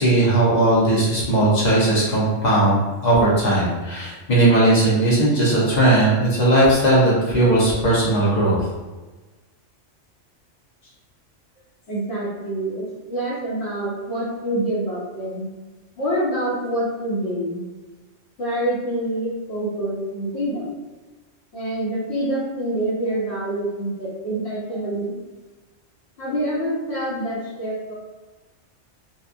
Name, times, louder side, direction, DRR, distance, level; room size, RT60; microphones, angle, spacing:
voice 1, 0.0-8.6, right 1 dB, 40° left, -6 dB, 0.8 m, -18 dB
voice 2, 11.9-15.5 16.0-17.6 18.4-20.7 21.5-25.1 26.2-27.9, right 1 dB, 65° left, -5 dB, 1.1 m, -26 dB
2.7 x 2.3 x 2.5 m, 1.2 s
omnidirectional pair, 1.3 m